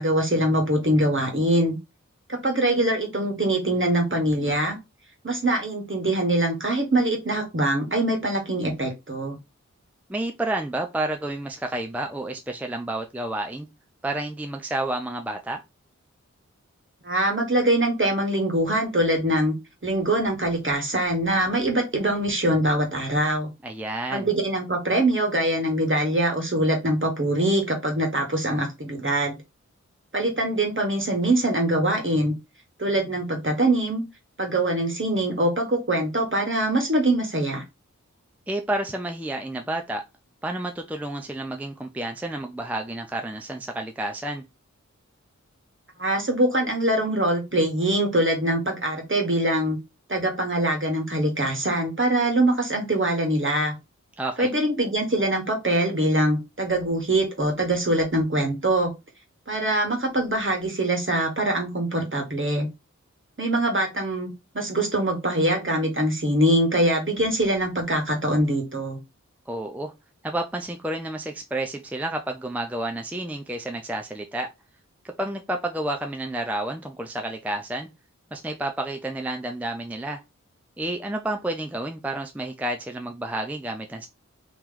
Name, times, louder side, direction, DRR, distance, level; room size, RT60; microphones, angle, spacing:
voice 1, 0.0-1.8 2.3-4.8 5.2-9.4 17.0-19.5 19.8-23.5 24.1-29.4 30.1-32.3 32.8-34.0 34.4-37.6 46.0-49.8 50.1-53.7 54.4-58.9 59.5-62.7 63.4-64.3 64.5-69.0, right 1 dB, 40° right, 1.4 m, -23 dB
voice 2, 10.1-13.7 14.0-15.6 23.6-24.3 38.5-40.0 40.4-44.4 54.2-54.5 69.5-69.9 70.2-74.5 75.0-77.9 78.3-80.2 80.8-84.1, right 1 dB, 5° right, 0.5 m, -30 dB
3.0 x 3.0 x 3.7 m
wide cardioid pair, 50°, 30 cm